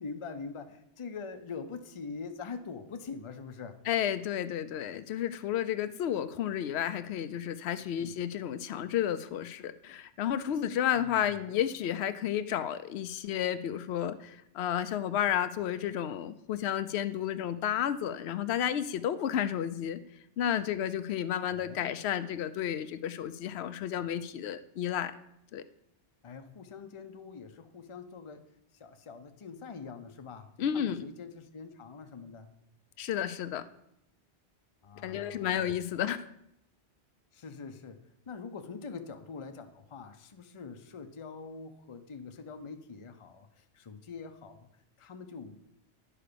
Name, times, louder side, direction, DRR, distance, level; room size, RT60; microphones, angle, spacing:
voice 1, 0.0-3.8 8.0-8.3 10.9-11.4 21.5-21.9 26.2-28.4 28.7-32.5 34.8-35.6 37.3-44.7 45.0-45.6, left 5 dB, 35° left, 7 dB, 0.6 m, -44 dB
voice 2, 3.9-20.0 20.4-25.1 25.5-25.6 30.6-31.0 33.0-33.6 35.0-36.3, left 10 dB, 70° left, 12 dB, 0.8 m, -32 dB
10.0 x 5.0 x 6.7 m, 0.78 s
omnidirectional pair, 1.2 m